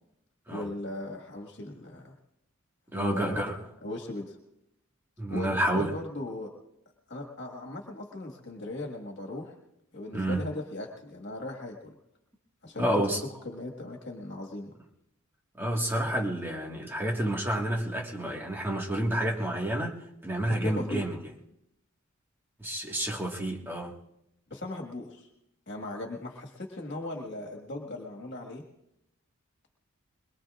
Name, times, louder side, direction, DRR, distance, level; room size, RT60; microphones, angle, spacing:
voice 1, 0.5-2.1 2.9-3.6 3.8-4.4 5.3-6.5 7.1-9.6 9.9-12.0 12.6-14.7 20.6-21.0 24.5-25.3 25.7-28.6, left 2 dB, 55° left, 1 dB, 1.8 m, -38 dB
voice 2, 2.9-3.5 5.2-5.9 10.1-10.4 12.8-13.2 15.6-21.2 22.6-23.9, right 1 dB, 10° right, -1 dB, 1.7 m, -29 dB
22.5 x 22.5 x 2.5 m, 0.83 s
head